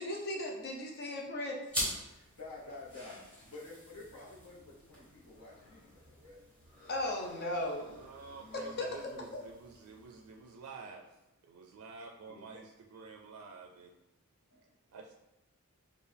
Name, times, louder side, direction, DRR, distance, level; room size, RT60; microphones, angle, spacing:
voice 1, 0.0-1.6 6.9-7.9 8.8-8.9, left 1 dB, 50° left, 0 dB, 0.7 m, -36 dB
sound 1, 1.7-10.6, equal, 5° left, 1.4 m, -45 dB
voice 2, 1.8-6.4 8.4-8.8 9.0-9.3 14.5-14.6, left 2 dB, 75° left, -4 dB, 1.0 m, -50 dB
voice 3, 7.9-13.9 14.9-15.1, right 4 dB, 90° right, 2 dB, 0.4 m, -50 dB
4.5 x 2.4 x 3.3 m, 0.95 s
head